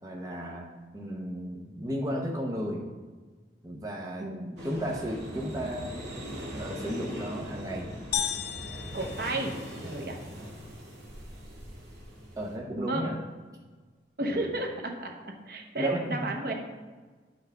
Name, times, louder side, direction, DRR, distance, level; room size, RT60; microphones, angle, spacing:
voice 1, 0.0-0.7 0.9-2.8 3.6-4.3 4.6-6.0 6.5-7.9 12.4-13.1 14.2-14.5 15.8-16.0, equal, 20° right, -1 dB, 0.8 m, -34 dB
voice 2, 4.2-4.6 8.9-10.2 12.8-13.1 14.2-16.5, right 2 dB, 55° right, 2 dB, 1.0 m, -33 dB
sound 1, 4.6-12.6, equal, 75° right, 1.6 m, -41 dB
sound 2, 8.1-10.1, left 9 dB, 60° left, 0.4 m, -34 dB
9.2 x 5.8 x 3.5 m, 1.3 s
head